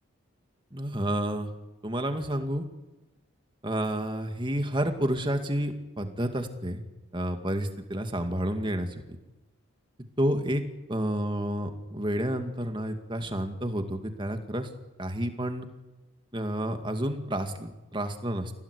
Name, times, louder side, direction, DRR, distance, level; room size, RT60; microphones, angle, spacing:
voice 1, 0.7-1.5 1.8-2.6 3.6-6.8 7.1-9.2 10.2-10.6 10.9-14.7 15.0-15.7 16.3-18.5, right 1 dB, 20° right, 6 dB, 2.2 m, -30 dB
28.5 x 17.5 x 9.9 m, 1.1 s
head